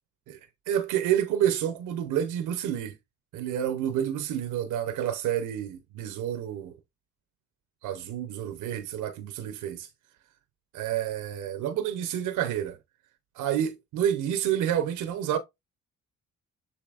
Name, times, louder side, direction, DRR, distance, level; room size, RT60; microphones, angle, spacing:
voice 1, 0.7-2.9 3.3-6.7 7.8-9.9 10.7-12.8 13.4-15.4, right 10 dB, 85° right, 0.7 m, -29 dB
6.9 x 2.8 x 2.4 m
cardioid pair, 90°, 30 cm